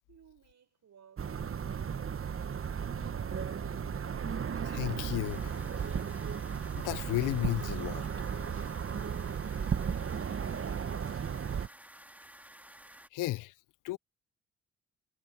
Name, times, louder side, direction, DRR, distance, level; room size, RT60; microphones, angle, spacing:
voice 1, 0.1-1.4, right 8 dB, 65° right, 6.6 m, -61 dB
sound 1, 1.2-11.7, right 7 dB, 45° right, 1.2 m, -35 dB
voice 2, 4.6-5.6 6.8-8.0 13.1-13.5 13.8-14.0, left 18 dB, 80° left, 0.6 m, -33 dB
sound 2, 5.2-13.1, right 1 dB, 5° right, 2.0 m, -53 dB
supercardioid pair, 55°, 31 cm